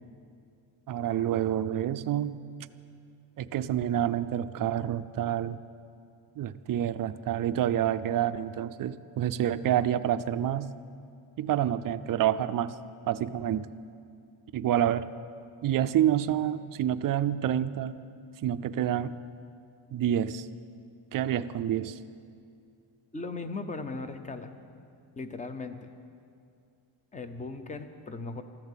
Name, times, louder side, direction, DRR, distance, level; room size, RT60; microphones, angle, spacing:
voice 1, 0.9-2.4 3.4-5.6 6.4-10.7 11.4-12.8 13.1-13.7 14.5-15.1 15.6-18.0 18.4-19.2 19.9-20.5 21.1-22.0, right 11 dB, 45° right, 13 dB, 0.4 m, -28 dB
voice 2, 23.1-24.5 25.2-25.9 27.1-28.4, left 3 dB, 15° left, 9 dB, 0.6 m, -38 dB
14.0 x 11.5 x 7.4 m, 2.4 s
cardioid pair, 170°, 48 cm